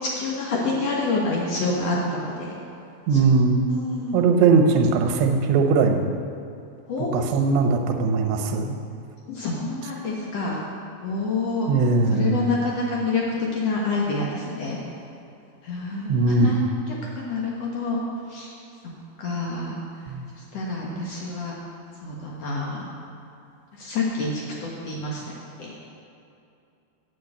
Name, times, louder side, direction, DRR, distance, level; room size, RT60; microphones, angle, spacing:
voice 1, 0.0-2.5 3.1-3.2 3.7-4.3 6.9-7.2 9.3-10.6 11.0-11.7 12.1-13.2 13.5-14.8 15.6-16.6 17.2-18.0 18.3-18.5 19.2-19.8 20.5-21.5 22.0-22.8 23.8-24.3 24.6-25.2 25.6-25.7, left 3 dB, 85° left, -3 dB, 1.4 m, -27 dB
voice 2, 3.1-3.6 4.1-6.0 7.0-8.8 11.7-12.4 16.1-16.6 20.1-20.2, right 4 dB, 80° right, 4 dB, 3.0 m, -20 dB
8.6 x 8.4 x 8.2 m, 2.6 s
omnidirectional pair, 4.9 m